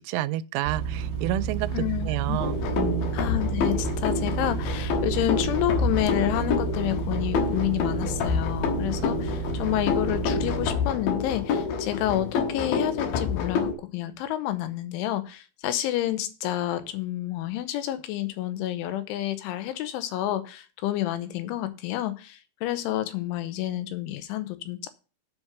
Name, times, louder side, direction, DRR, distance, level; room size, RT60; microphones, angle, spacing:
voice 1, 0.0-3.1, right 13 dB, 90° right, 3.1 m, -30 dB
sound 1, 0.6-10.7, right 7 dB, 65° right, 1.4 m, -31 dB
voice 2, 1.7-2.4 3.1-24.9, left 14 dB, 85° left, 3.2 m, -29 dB
sound 2, 2.4-13.7, left 6 dB, 70° left, 2.4 m, -28 dB
7.5 x 5.4 x 7.0 m
omnidirectional pair, 5.5 m